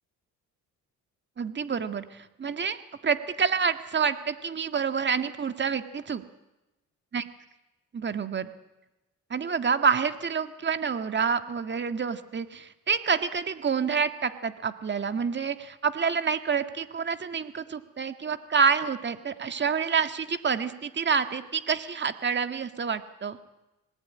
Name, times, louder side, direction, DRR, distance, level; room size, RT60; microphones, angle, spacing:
voice 1, 1.4-6.2 7.1-7.2 7.9-8.5 9.3-23.4, right 6 dB, 35° right, 9 dB, 1.9 m, -28 dB
26.0 x 19.5 x 9.6 m, 1.0 s
cardioid pair, 90°, 30 cm